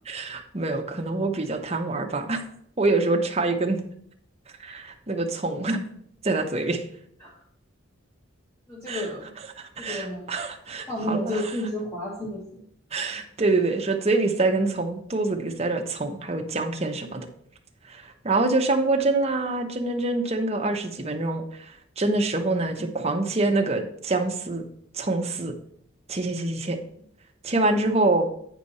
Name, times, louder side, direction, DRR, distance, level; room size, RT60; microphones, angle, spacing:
voice 1, 0.1-2.4 2.8-3.8 4.6-5.8 6.2-6.8 8.9-9.1 9.6-11.4 12.9-17.3 17.9-21.4 22.0-24.6 24.9-25.5 26.1-26.8 27.4-28.3, right 2 dB, 30° right, 3 dB, 0.9 m, -25 dB
voice 2, 8.7-9.3 9.8-10.2 10.9-12.6 13.1-13.2, left 1 dB, 15° left, -6 dB, 1.6 m, -31 dB
9.1 x 5.1 x 4.2 m, 0.67 s
head